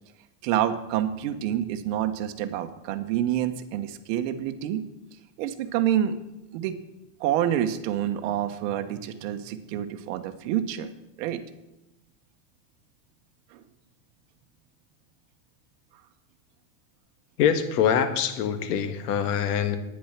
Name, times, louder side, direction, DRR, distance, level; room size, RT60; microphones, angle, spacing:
voice 1, 0.4-4.8 5.4-6.2 6.5-6.8 7.2-10.9 11.2-11.4 13.5-13.6, right 11 dB, 55° right, 8 dB, 1.2 m, -27 dB
voice 2, 17.4-19.8, left 8 dB, 75° left, 8 dB, 1.6 m, -24 dB
10.0 x 9.8 x 6.0 m, 0.92 s
supercardioid pair, 150°, 47 cm